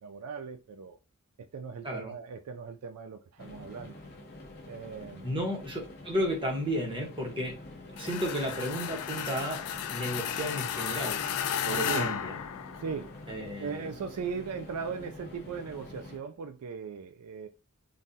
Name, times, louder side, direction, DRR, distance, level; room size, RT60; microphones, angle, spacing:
voice 1, 0.0-1.0 1.4-4.0 4.7-5.3 11.9-12.1 12.7-13.2 13.6-17.5, right 6 dB, 85° right, 0.4 m, -38 dB
sound 1, 3.4-16.2, left 2 dB, 45° left, 0.7 m, -47 dB
voice 2, 5.2-7.6 8.0-9.6 9.9-11.2 11.6-12.4 13.3-13.9, equal, 25° right, 1.1 m, -33 dB
sound 2, 8.0-13.2, left 8 dB, 90° left, 0.4 m, -34 dB
3.7 x 2.4 x 2.7 m
head